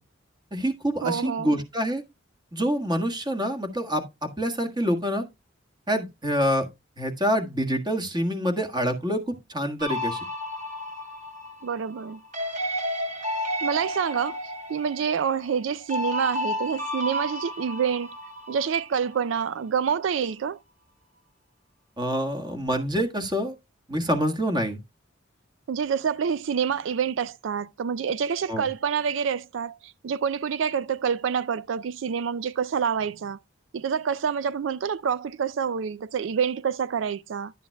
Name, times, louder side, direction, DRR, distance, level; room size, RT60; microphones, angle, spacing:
voice 1, 0.5-2.0 2.5-5.2 5.9-6.7 7.0-10.2 22.0-23.5 23.9-24.8 28.5-28.7, equal, 20° right, 1.6 m, -26 dB
voice 2, 1.0-1.6 11.6-12.2 13.6-18.1 18.5-20.6 25.7-33.4 33.7-37.5, right 7 dB, 70° right, 0.4 m, -27 dB
sound 1, 9.8-19.2, equal, 40° right, 3.0 m, -32 dB
11.0 x 9.1 x 2.2 m
head